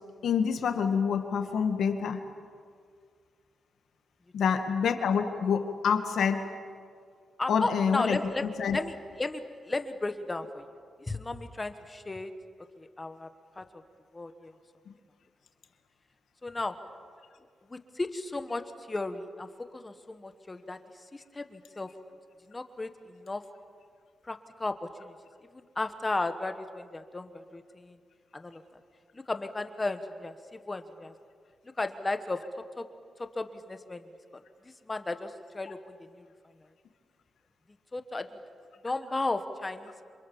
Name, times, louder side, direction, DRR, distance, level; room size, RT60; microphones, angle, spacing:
voice 1, 0.2-2.2 4.3-6.4 7.5-8.2 8.6-8.8, left 6 dB, 70° left, 6 dB, 2.1 m, -27 dB
voice 2, 7.4-8.5 8.7-10.6 11.1-12.3 12.8-13.3 13.6-13.7 14.1-14.5 16.4-16.7 17.7-18.6 18.9-19.5 19.7-20.8 21.1-21.9 22.5-23.4 24.2-25.1 25.5-28.0 28.3-28.6 29.1-30.3 30.7-31.1 31.8-32.4 32.8-32.9 33.2-34.0 34.9-36.3 37.9-38.3 38.8-40.0, left 2 dB, 15° left, 8 dB, 1.3 m, -34 dB
27.5 x 27.5 x 7.3 m, 2.1 s
wide cardioid pair, 160°, 0 cm